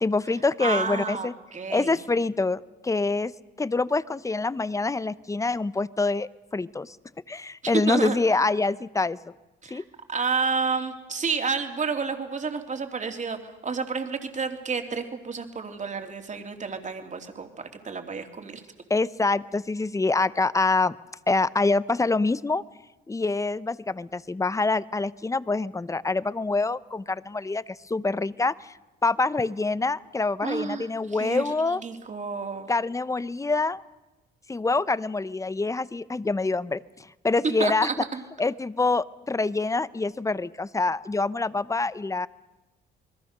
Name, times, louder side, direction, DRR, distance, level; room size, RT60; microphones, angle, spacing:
voice 1, 0.0-1.3 1.7-3.3 3.6-7.0 7.3-9.2 9.7-9.8 18.9-21.0 21.3-22.6 23.1-28.7 29.0-31.8 32.7-33.8 34.5-36.8 37.2-37.9 38.4-42.3, left 3 dB, 15° left, 18 dB, 0.7 m, -25 dB
voice 2, 0.6-2.0 7.6-8.2 9.6-9.8 10.1-18.6 30.4-32.7 37.6-38.2, right 5 dB, 40° right, 6 dB, 3.0 m, -30 dB
28.5 x 21.0 x 6.7 m, 1.1 s
cardioid pair, 90°, 20 cm